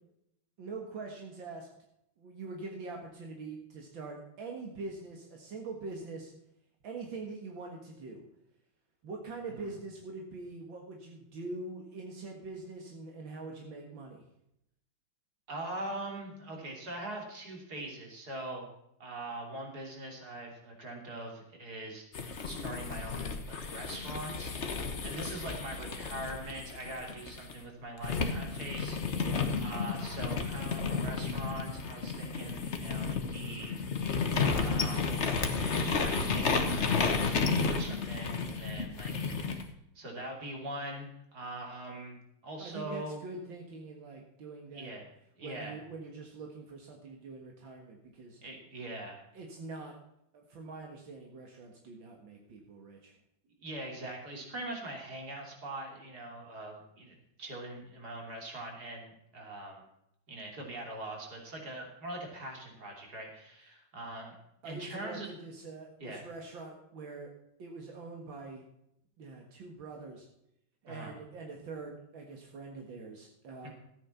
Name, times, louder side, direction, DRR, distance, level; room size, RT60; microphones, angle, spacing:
voice 1, 0.6-1.7 2.2-6.3 6.8-8.2 9.0-14.2 29.2-29.4 42.6-44.9 45.4-48.4 49.3-49.9 50.3-53.1 64.6-67.3 67.6-68.6 69.2-70.3 70.8-73.7, right 3 dB, 80° right, 1 dB, 2.4 m, -44 dB
voice 2, 15.5-18.7 19.0-22.0 22.4-24.8 25.0-29.3 29.6-39.3 40.0-42.2 42.4-43.2 44.7-45.1 45.4-45.8 48.4-49.2 53.6-59.8 60.3-64.3 64.6-65.3 66.0-66.3 70.9-71.1 73.6-73.7, right 1 dB, 55° right, 1 dB, 3.6 m, -42 dB
sound 1, 22.1-27.5 28.0-39.6, left 4 dB, 40° left, 1.3 m, -32 dB
13.5 x 9.0 x 5.7 m, 0.78 s
omnidirectional pair, 2.1 m